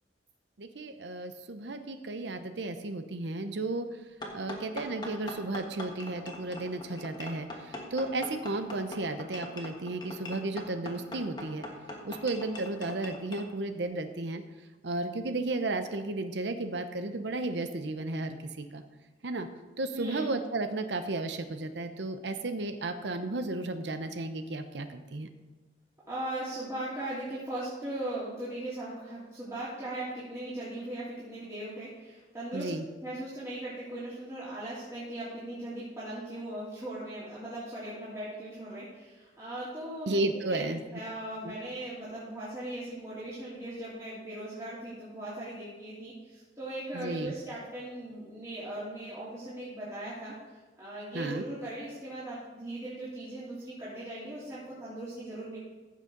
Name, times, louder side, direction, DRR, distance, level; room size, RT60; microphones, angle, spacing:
voice 1, 0.6-3.9 4.3-11.7 12.0-14.4 14.8-18.8 19.2-19.5 19.8-25.3 32.5-32.8 40.1-40.8 41.4-41.5 46.9-47.3 51.1-51.5, right 2 dB, 80° right, 8 dB, 0.8 m, -33 dB
sound 1, 4.2-13.5, left 1 dB, 25° left, 1.5 m, -42 dB
voice 2, 19.9-20.2 26.1-32.7 33.0-50.3 50.8-55.6, right 1 dB, 15° right, -11 dB, 3.0 m, -39 dB
15.0 x 6.7 x 3.9 m, 1.3 s
head